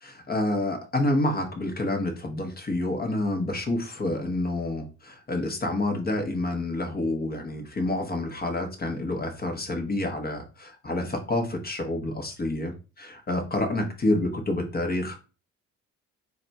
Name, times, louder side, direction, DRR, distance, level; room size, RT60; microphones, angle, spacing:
voice 1, 0.0-15.1, left 1 dB, 30° left, 3 dB, 1.0 m, -28 dB
4.0 x 2.3 x 4.0 m, 0.32 s
cardioid pair, 90°, 30 cm